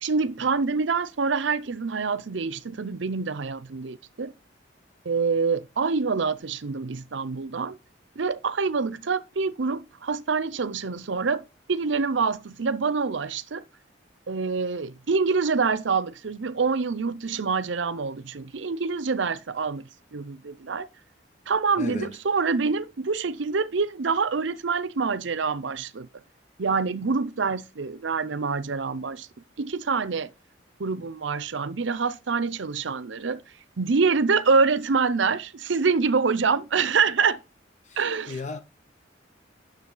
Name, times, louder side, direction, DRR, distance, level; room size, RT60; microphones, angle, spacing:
voice 1, 0.0-4.3 5.0-7.8 8.2-13.6 14.3-20.9 21.5-26.1 26.6-29.3 29.6-30.3 30.8-33.4 33.8-37.4 38.0-38.3, right 4 dB, 70° right, 0.6 m, -26 dB
voice 2, 21.8-22.2 37.8-38.6, left 2 dB, 40° left, 1.3 m, -36 dB
9.7 x 6.9 x 3.9 m
head